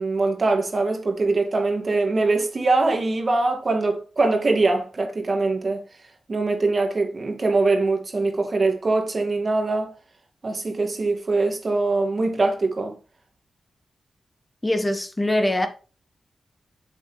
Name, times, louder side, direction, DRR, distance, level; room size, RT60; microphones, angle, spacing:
voice 1, 0.0-5.8 6.3-9.9 10.4-12.9, right 3 dB, 50° right, 2.0 m, -22 dB
voice 2, 14.6-15.7, left 1 dB, 20° left, 1.2 m, -22 dB
7.6 x 7.1 x 3.1 m
cardioid pair, 55°, 0 cm